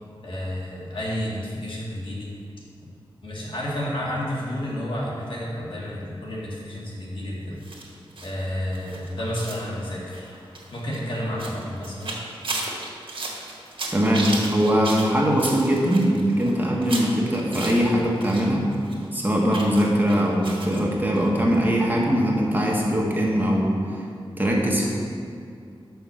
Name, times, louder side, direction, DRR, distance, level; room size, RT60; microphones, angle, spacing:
voice 1, 0.2-2.3 3.2-7.6 8.2-10.3 10.7-12.2, equal, 65° left, -5 dB, 2.0 m, -31 dB
sound 1, 7.6-18.5 18.7-20.8 21.1-21.3 21.5-21.6, right 2 dB, 70° right, 1.5 m, -35 dB
voice 2, 13.9-18.7 19.1-24.0 24.4-24.9, equal, 20° right, -3 dB, 1.3 m, -21 dB
6.2 x 5.9 x 7.1 m, 2.3 s
wide cardioid pair, 110°, 9 cm